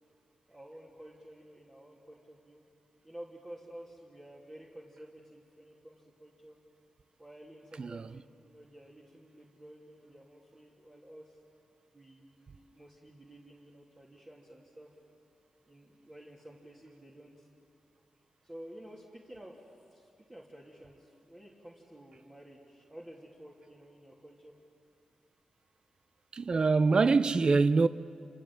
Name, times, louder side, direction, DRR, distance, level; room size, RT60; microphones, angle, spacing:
voice 1, 0.5-2.6 3.0-6.6 7.2-11.4 11.9-14.9 15.7-17.5 18.4-24.5, right 1 dB, 25° right, 2.8 m, -52 dB
voice 2, 7.8-8.1 26.3-27.9, right 4 dB, 45° right, 0.6 m, -24 dB
29.0 x 26.5 x 7.5 m
wide cardioid pair, 105°, 2 cm